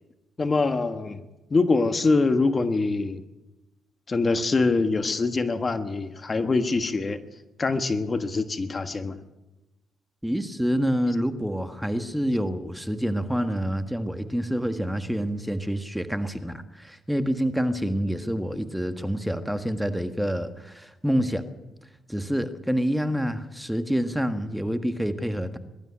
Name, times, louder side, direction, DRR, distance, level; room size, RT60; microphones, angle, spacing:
voice 1, 0.4-1.2 1.5-3.2 4.1-7.2 7.6-9.2, left 3 dB, 30° left, 9 dB, 1.4 m, -24 dB
voice 2, 10.2-21.4 22.1-25.6, equal, ahead, 9 dB, 1.6 m, -27 dB
22.0 x 12.5 x 9.9 m, 1.0 s
cardioid pair, 90°, 0 cm